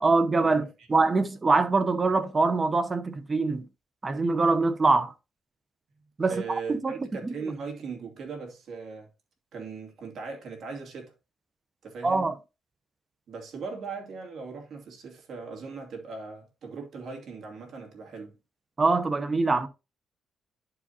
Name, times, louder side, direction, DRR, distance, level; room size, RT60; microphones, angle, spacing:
voice 1, 0.0-3.6 4.0-5.1 6.2-7.0 7.2-7.3 12.0-12.3 18.8-19.7, right 3 dB, 30° right, 0.9 m, -24 dB
voice 2, 6.0-9.1 9.5-11.1 11.8-12.3 13.3-18.4, right 4 dB, 65° right, 2.4 m, -39 dB
11.0 x 4.9 x 2.9 m
cardioid pair, 90°, 0 cm